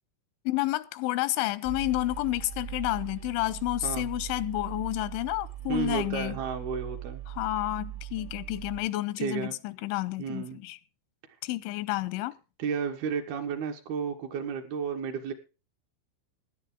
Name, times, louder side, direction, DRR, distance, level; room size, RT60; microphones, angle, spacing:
voice 1, 0.5-6.4 7.3-10.8 11.4-12.3, left 18 dB, 90° left, 3.2 m, -30 dB
sound 1, 1.6-8.8, right 12 dB, 35° right, 1.0 m, -40 dB
voice 2, 5.7-7.2 9.2-9.5 10.2-10.6 12.6-15.3, right 6 dB, 65° right, 3.0 m, -32 dB
17.0 x 10.5 x 3.7 m
omnidirectional pair, 5.3 m